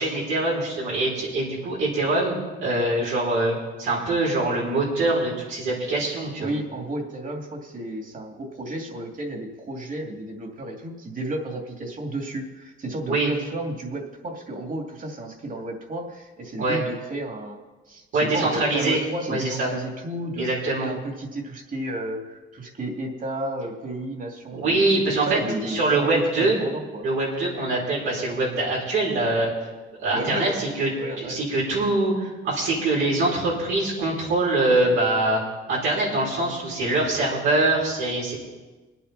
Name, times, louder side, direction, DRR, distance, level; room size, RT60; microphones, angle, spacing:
voice 1, 0.0-6.5 13.1-13.3 16.6-16.8 18.1-19.0 19.3-19.7 20.4-20.9 24.5-26.6 27.0-29.5 30.0-30.9 31.2-35.4 35.7-38.3, right 2 dB, 90° right, -5 dB, 6.0 m, -24 dB
voice 2, 6.4-17.6 17.9-20.5 20.8-24.8 25.2-27.1 30.1-30.6 31.0-31.4, right 1 dB, 40° right, 2 dB, 2.7 m, -32 dB
23.0 x 8.9 x 4.2 m, 1.2 s
cardioid pair, 90°, 20 cm